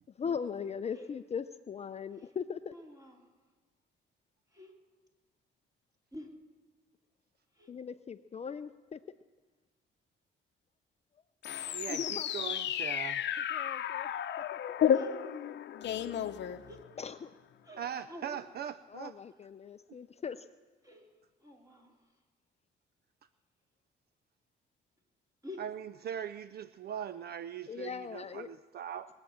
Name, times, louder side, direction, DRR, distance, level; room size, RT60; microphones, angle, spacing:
voice 1, 0.1-2.7 7.7-9.0 11.9-12.5 13.4-14.1 14.5-14.6 17.0-17.3 18.9-20.5 27.7-28.5, left 6 dB, 35° left, 11 dB, 0.5 m, -39 dB
voice 2, 2.7-3.3 4.5-4.7 6.1-6.3 7.5-7.7 14.9-15.2 16.7-16.8 17.6-17.8 18.1-18.4 20.8-21.1 21.4-22.1 25.4-25.6, left 1 dB, 20° right, 0 dB, 3.3 m, -48 dB
sound 1, 11.4-17.1, left 9 dB, 65° left, 0.8 m, -32 dB
voice 3, 11.7-13.3 17.8-19.1 25.6-29.1, right 9 dB, 55° right, 14 dB, 0.4 m, -40 dB
21.5 x 8.7 x 7.2 m, 1.4 s
cardioid pair, 90°, 20 cm